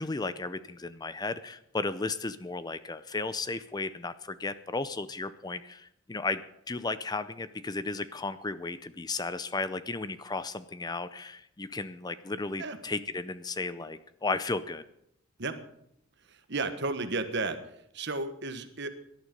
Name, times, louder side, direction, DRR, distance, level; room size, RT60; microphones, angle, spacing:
voice 1, 0.0-6.4 6.7-14.8, left 3 dB, 20° left, 13 dB, 0.5 m, -34 dB
voice 2, 16.3-17.6 17.9-18.9, right 3 dB, 55° right, 9 dB, 1.4 m, -33 dB
18.0 x 11.5 x 5.3 m, 0.76 s
head